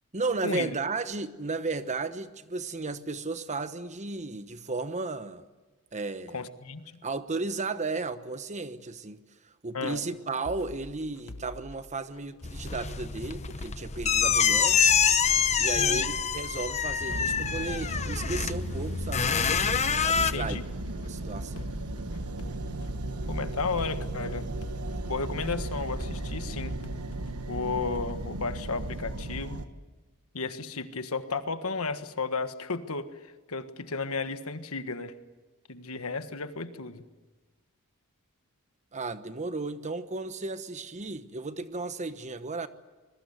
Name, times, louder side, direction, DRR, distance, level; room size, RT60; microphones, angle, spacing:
voice 1, 0.1-5.4 5.9-6.4 7.0-14.8 15.6-19.2 20.0-20.6 21.0-21.7 38.9-42.7, right 3 dB, 30° right, 1.1 m, -34 dB
voice 2, 6.3-6.8 9.7-10.0 15.8-16.1 20.1-20.6 23.3-24.5 25.0-26.7 27.5-29.6 30.3-33.1 33.5-35.1 35.7-37.0, left 4 dB, 70° left, 1.5 m, -33 dB
sound 1, 10.4-28.2, left 2 dB, 90° left, 1.2 m, -47 dB
sound 2, 12.4-20.3, left 7 dB, 30° left, 0.9 m, -26 dB
sound 3, 17.1-29.7, right 1 dB, 75° right, 1.5 m, -35 dB
26.5 x 21.5 x 8.1 m
head